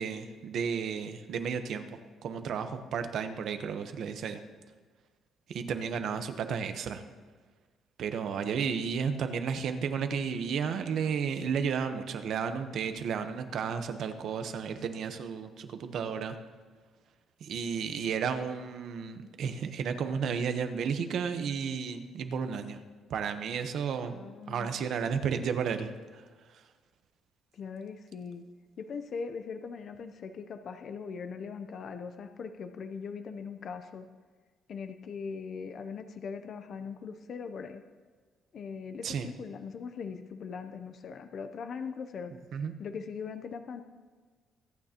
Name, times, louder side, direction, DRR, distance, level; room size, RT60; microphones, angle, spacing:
voice 1, 0.0-4.4 5.5-7.0 8.0-16.3 17.4-22.8 23.1-24.1 24.5-25.9 39.0-39.3 42.5-42.7, right 6 dB, 55° right, 8 dB, 0.9 m, -33 dB
voice 2, 24.1-24.7 27.5-28.5 28.8-34.1 34.7-37.8 38.5-42.4 42.8-43.8, left 5 dB, 45° left, 8 dB, 0.6 m, -40 dB
23.5 x 9.3 x 2.9 m, 1.5 s
cardioid pair, 165°, 0 cm